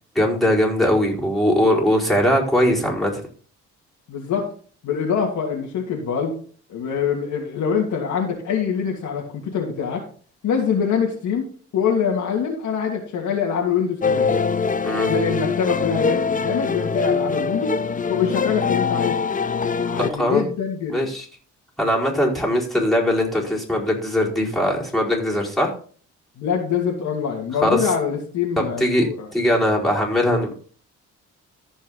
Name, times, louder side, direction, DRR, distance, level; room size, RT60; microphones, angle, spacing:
voice 1, 0.1-3.2 14.8-15.1 20.0-20.4 20.9-21.3 21.8-25.7 27.6-27.9 28.6-30.5, equal, ahead, -4 dB, 4.9 m, -20 dB
voice 2, 4.1-4.5 4.8-6.3 6.7-10.0 10.4-14.3 14.9-17.7 18.1-19.2 19.9-21.0 26.4-29.3, left 7 dB, 75° left, -1 dB, 2.8 m, -24 dB
sound 1, 14.0-20.1, left 5 dB, 25° left, 0.7 m, -23 dB
14.5 x 5.5 x 4.1 m, 0.43 s
cardioid pair, 90°, 30 cm